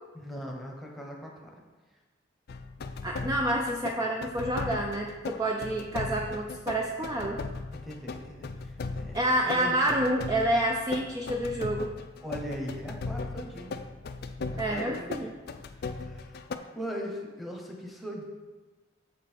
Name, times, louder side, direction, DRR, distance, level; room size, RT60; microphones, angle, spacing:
voice 1, 0.1-1.6 7.7-9.8 12.2-13.7 14.5-15.2 15.7-16.4 16.7-18.2, equal, ahead, -1 dB, 1.0 m, -40 dB
sound 1, 2.5-16.6, left 3 dB, 55° left, 0.4 m, -38 dB
voice 2, 3.0-7.4 9.1-11.9 14.6-15.3, right 1 dB, 20° right, 1 dB, 0.4 m, -28 dB
7.3 x 5.3 x 4.5 m, 1.3 s
head